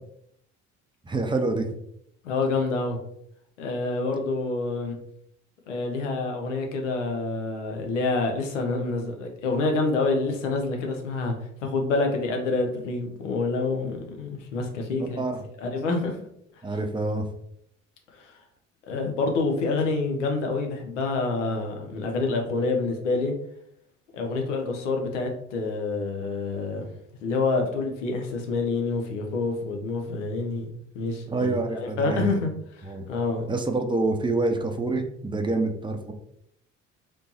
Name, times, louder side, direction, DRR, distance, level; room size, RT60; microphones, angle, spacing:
voice 1, 1.0-1.7 15.2-15.4 16.6-17.3 31.3-32.4 32.8-33.1 33.5-36.1, right 2 dB, 15° right, 5 dB, 0.6 m, -27 dB
voice 2, 2.2-3.0 3.6-5.0 5.7-11.3 11.6-15.2 15.6-16.2 18.1-18.4 18.9-23.3 24.1-26.9 27.2-30.7 30.9-31.5 31.8-32.5 32.8-33.4, left 3 dB, 80° left, 3 dB, 0.7 m, -27 dB
3.3 x 3.0 x 2.8 m, 0.71 s
hypercardioid pair, 55°, 36 cm